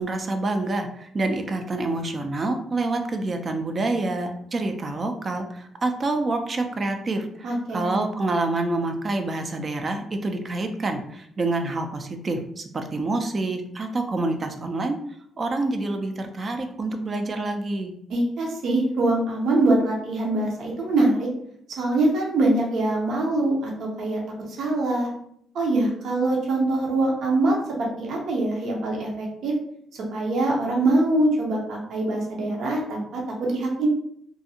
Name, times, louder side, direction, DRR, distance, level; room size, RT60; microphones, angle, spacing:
voice 1, 0.0-15.0 15.4-17.9, right 2 dB, 40° right, 5 dB, 0.4 m, -27 dB
voice 2, 7.4-8.0 18.1-21.3 21.8-24.2 24.6-25.1 25.5-29.5 30.1-33.9, right 2 dB, 70° right, -2 dB, 0.7 m, -23 dB
2.5 x 2.3 x 2.7 m, 0.70 s
cardioid pair, 90°, 0 cm